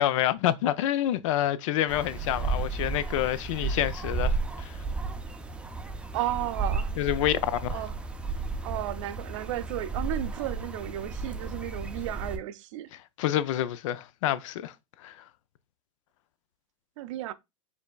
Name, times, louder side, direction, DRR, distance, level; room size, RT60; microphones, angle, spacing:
voice 1, 0.0-4.7 7.0-7.4 7.7-7.8 13.2-14.7 15.0-15.1, left 12 dB, 70° left, 0.5 m, -27 dB
sound 1, 1.9-12.4, right 3 dB, 5° right, 0.4 m, -33 dB
voice 2, 6.1-6.9 7.7-8.0 8.6-12.9 17.0-17.3, right 13 dB, 65° right, 0.5 m, -33 dB
5.2 x 3.4 x 2.2 m
hypercardioid pair, 120°, 17 cm